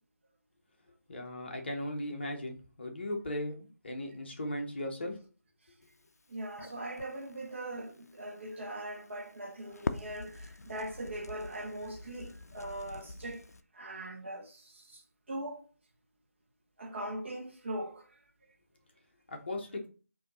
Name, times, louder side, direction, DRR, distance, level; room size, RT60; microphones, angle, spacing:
voice 1, 1.1-5.1 19.3-19.9, left 1 dB, 40° left, 0.8 m, -37 dB
Crackle, 5.8-13.6, left 3 dB, 65° left, 0.4 m, -45 dB
voice 2, 6.3-13.4 13.7-15.0 15.3-15.6 16.8-18.0, right 1 dB, 45° right, 0.9 m, -40 dB
4.4 x 2.7 x 3.8 m
figure-of-eight pair, 160°, 9 cm